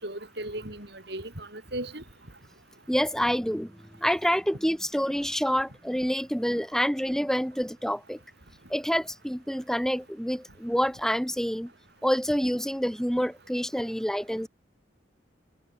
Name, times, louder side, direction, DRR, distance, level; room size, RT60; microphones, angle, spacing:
voice 1, 0.0-2.0, right 1 dB, 60° right, 7.4 m, -36 dB
voice 2, 2.9-3.7 4.0-8.2 8.7-11.7 12.0-14.5, equal, 5° left, 3.5 m, -27 dB
head